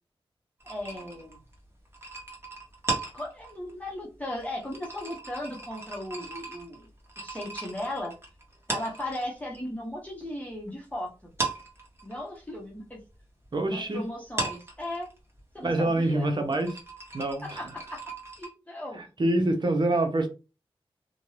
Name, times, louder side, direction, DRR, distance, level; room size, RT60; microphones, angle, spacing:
voice 1, 0.6-1.4 3.1-6.9 7.2-8.1 8.7-11.3 12.0-13.0 13.7-15.1 15.5-16.3 17.4-18.0 18.4-19.0, left 1 dB, 15° left, 1.0 m, -37 dB
sound 1, 0.6-9.6 9.9-10.9 11.2-18.5, right 3 dB, 25° right, 1.1 m, -37 dB
voice 2, 13.5-14.0 15.6-16.8 17.1-17.7 18.9-20.3, right 2 dB, 45° right, 0.8 m, -26 dB
2.6 x 2.2 x 3.2 m
cardioid pair, 60°, 10 cm